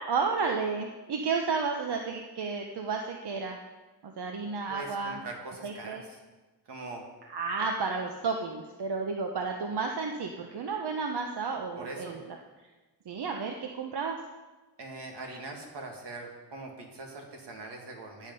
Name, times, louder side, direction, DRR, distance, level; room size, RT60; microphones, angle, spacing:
voice 1, 0.0-3.6 4.0-5.2 5.6-6.0 7.3-12.4 13.1-14.2, right 4 dB, 75° right, 3 dB, 1.0 m, -32 dB
voice 2, 4.7-6.2 6.7-7.0 11.8-12.2 14.8-18.3, right 2 dB, 90° right, 1 dB, 2.1 m, -42 dB
10.5 x 9.3 x 5.4 m, 1.2 s
cardioid pair, 75°, 40 cm